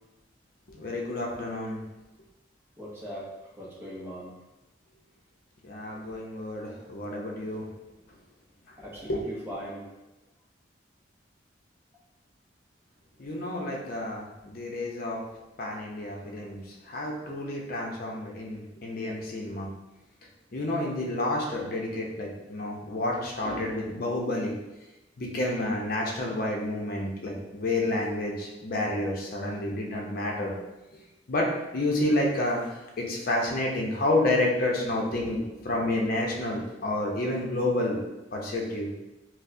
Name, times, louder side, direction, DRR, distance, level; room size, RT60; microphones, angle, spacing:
voice 1, 0.7-1.8 5.6-7.7 9.1-9.2 13.2-15.2 15.6-16.6 16.9-19.7 20.5-24.5 25.2-30.5 31.3-32.6 33.0-38.0 38.3-38.9, left 1 dB, 50° left, -1 dB, 0.6 m, -29 dB
voice 2, 2.8-3.3 3.6-4.3 8.8-9.9, equal, 15° right, -7 dB, 0.7 m, -39 dB
4.4 x 2.1 x 2.6 m, 1.0 s
head